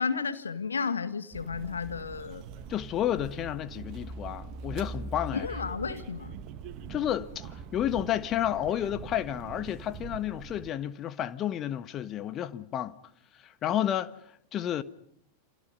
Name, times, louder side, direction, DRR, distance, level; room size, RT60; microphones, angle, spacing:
voice 1, 0.0-2.4 5.3-6.3, left 5 dB, 75° left, 2.0 m, -32 dB
sound 1, 1.3-10.7, right 4 dB, 40° right, 2.1 m, -42 dB
voice 2, 2.7-5.5 6.9-13.0 13.4-14.1 14.5-14.8, left 11 dB, 30° left, 1.4 m, -31 dB
29.0 x 26.5 x 5.5 m
figure-of-eight pair, 90°, 0 cm